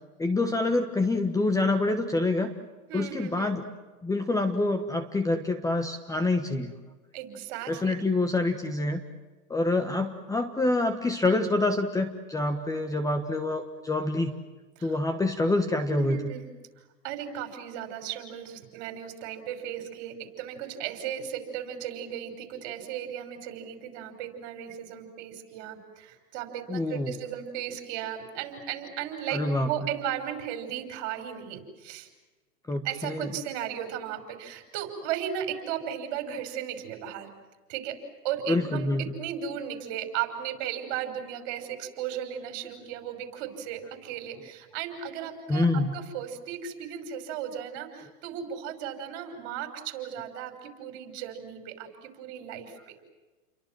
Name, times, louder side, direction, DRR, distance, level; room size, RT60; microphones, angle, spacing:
voice 1, 0.2-2.5 2.9-3.6 4.0-6.7 7.7-9.0 9.5-14.3 14.8-16.2 26.7-27.1 29.3-29.7 32.7-33.3 38.5-39.0 45.5-45.9, left 2 dB, 10° left, 7 dB, 1.3 m, -26 dB
voice 2, 2.9-3.5 7.1-7.9 14.8-15.0 15.9-16.5 17.0-32.1 32.8-37.3 37.7-38.0 38.2-38.9 39.2-45.7 45.9-53.1, right 9 dB, 45° right, 7 dB, 5.9 m, -36 dB
30.0 x 23.5 x 7.6 m, 1.2 s
hypercardioid pair, 135°, 43 cm